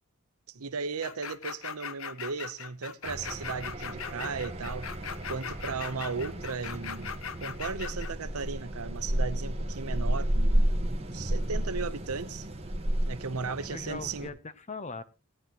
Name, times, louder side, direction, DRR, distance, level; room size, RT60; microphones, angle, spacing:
voice 1, 0.5-4.9 5.3-10.8 11.1-12.5 13.1-14.3, right 5 dB, 80° right, 0.8 m, -36 dB
sound 1, 1.0-8.1, left 7 dB, 65° left, 0.7 m, -39 dB
sound 2, 3.0-14.3, right 1 dB, 25° right, 1.3 m, -32 dB
voice 2, 13.4-15.0, left 3 dB, 30° left, 0.7 m, -40 dB
17.5 x 9.6 x 3.0 m
head